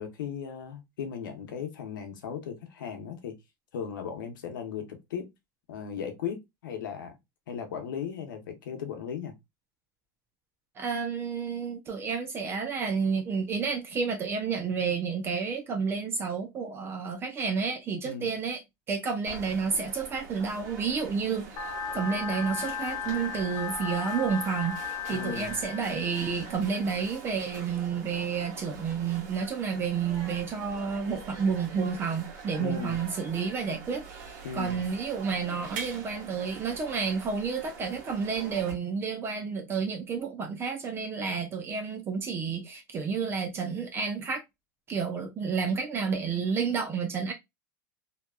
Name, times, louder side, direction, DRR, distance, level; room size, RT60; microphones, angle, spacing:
voice 1, 0.0-3.4 3.7-5.3 5.7-7.2 7.5-9.3 18.0-18.3 25.1-25.5 32.6-33.0 34.4-34.8, left 7 dB, 85° left, 0.8 m, -37 dB
voice 2, 10.8-18.6 18.9-44.4 44.9-47.3, right 5 dB, 20° right, 0.4 m, -30 dB
sound 1, 19.2-38.7, right 4 dB, 65° right, 0.9 m, -44 dB
sound 2, 21.6-26.6, left 6 dB, 35° left, 0.6 m, -36 dB
2.8 x 2.2 x 2.3 m
supercardioid pair, 140°, 11 cm